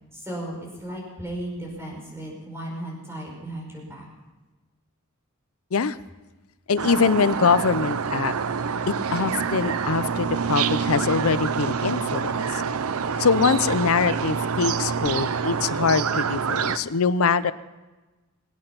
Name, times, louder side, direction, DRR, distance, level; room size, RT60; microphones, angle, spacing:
voice 1, 0.1-4.1, right 1 dB, 10° right, -2 dB, 5.2 m, -35 dB
voice 2, 6.7-8.3 8.9-12.6 13.2-17.5, left 5 dB, 75° left, 15 dB, 0.6 m, -23 dB
sound 1, 6.8-16.8, right 6 dB, 75° right, 0.6 m, -26 dB
23.5 x 8.9 x 5.9 m, 1.2 s
head